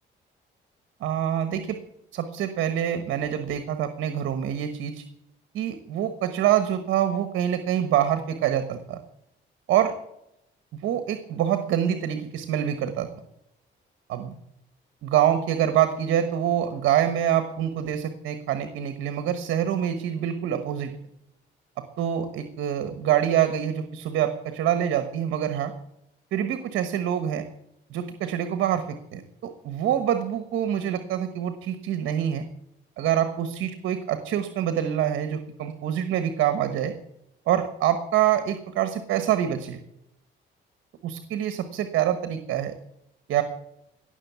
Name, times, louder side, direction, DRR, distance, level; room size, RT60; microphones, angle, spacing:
voice 1, 1.0-1.8 2.1-5.0 5.5-9.0 9.7-9.9 10.8-13.1 14.1-14.3 15.0-20.9 22.0-25.7 26.3-27.4 27.9-32.4 33.0-36.9 37.5-39.8 41.0-42.7 43.3-43.4, right 10 dB, 85° right, 9 dB, 1.3 m, -25 dB
18.0 x 6.5 x 8.1 m, 0.80 s
cardioid pair, 90°, 20 cm